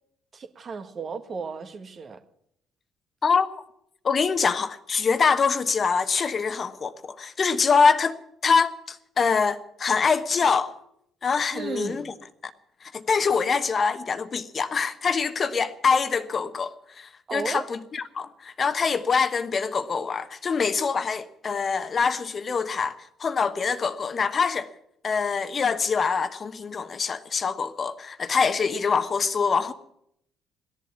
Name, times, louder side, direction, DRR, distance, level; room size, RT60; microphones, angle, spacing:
voice 1, 0.3-2.2 11.5-12.0 17.3-17.7, right 5 dB, 40° right, 1.6 m, -34 dB
voice 2, 4.0-10.8 11.2-12.1 12.8-24.7 25.0-29.7, left 5 dB, 40° left, 1.2 m, -24 dB
17.0 x 11.0 x 7.2 m
figure-of-eight pair, 50°, 0 cm